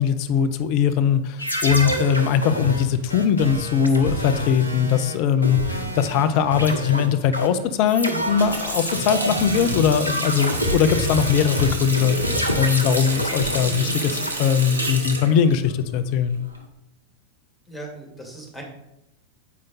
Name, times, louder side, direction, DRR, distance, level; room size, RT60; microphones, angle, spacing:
voice 1, 0.0-12.2 12.6-16.4, left 7 dB, 45° left, 12 dB, 0.5 m, -21 dB
sound 1, 1.4-6.2 6.5-14.3, equal, 80° left, 1.0 m, -27 dB
sound 2, 1.7-3.1 5.7-7.2 9.7-11.1 13.7-15.2, right 7 dB, 60° right, 0.6 m, -39 dB
Water tap faucet, 8.2-16.6, right 2 dB, 80° right, 1.0 m, -30 dB
voice 2, 17.7-18.6, right 2 dB, 10° left, 0 dB, 2.3 m, -38 dB
8.4 x 5.0 x 4.1 m, 0.83 s
figure-of-eight pair, 90°, 0 cm